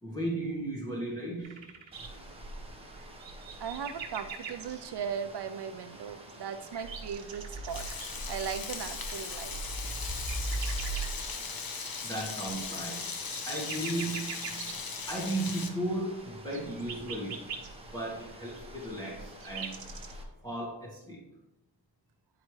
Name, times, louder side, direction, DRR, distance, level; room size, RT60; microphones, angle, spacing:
voice 1, 0.0-2.1 12.0-14.8 15.0-20.0 20.4-21.3, right 1 dB, 10° left, -7 dB, 1.5 m, -36 dB
sound 1, 1.4-2.1 2.9-4.9 6.1-8.1 9.5-11.2 12.8-14.7 16.4-17.7 18.8-20.1, right 7 dB, 90° right, 1.1 m, -42 dB
sound 2, 1.9-20.2, right 1 dB, 15° right, 1.2 m, -43 dB
voice 2, 3.6-9.6, right 7 dB, 60° right, 9 dB, 0.5 m, -38 dB
Frying (food), 7.7-15.7, left 5 dB, 50° left, 0.9 m, -38 dB
9.4 x 4.8 x 3.2 m, 0.92 s
wide cardioid pair, 115°, 45 cm